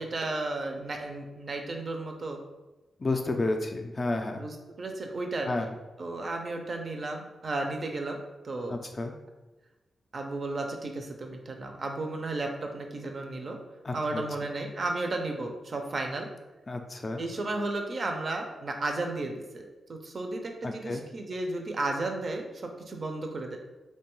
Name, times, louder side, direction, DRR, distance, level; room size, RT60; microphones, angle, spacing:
voice 1, 0.0-2.4 4.3-5.5 6.0-8.2 8.4-8.8 10.1-13.6 13.9-16.3 17.2-23.6, right 2 dB, 50° right, 3 dB, 0.4 m, -33 dB
voice 2, 3.0-4.5 5.4-5.7 8.7-9.1 13.8-14.2 16.7-17.2 20.6-21.0, left 2 dB, 35° left, 4 dB, 0.3 m, -31 dB
2.6 x 2.2 x 3.0 m, 1.1 s
cardioid pair, 85°, 0 cm